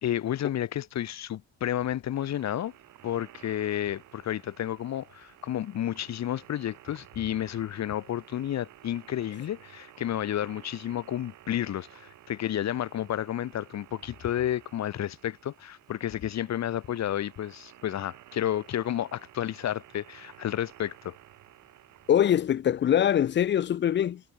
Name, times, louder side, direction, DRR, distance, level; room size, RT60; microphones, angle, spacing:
voice 1, 0.0-2.7 3.0-21.1, left 11 dB, 65° left, 1.3 m, -31 dB
sound 1, 2.2-22.2, right 14 dB, 80° right, 3.7 m, -54 dB
voice 2, 22.1-24.2, left 10 dB, 40° left, 0.4 m, -23 dB
cardioid pair, 90°, 30 cm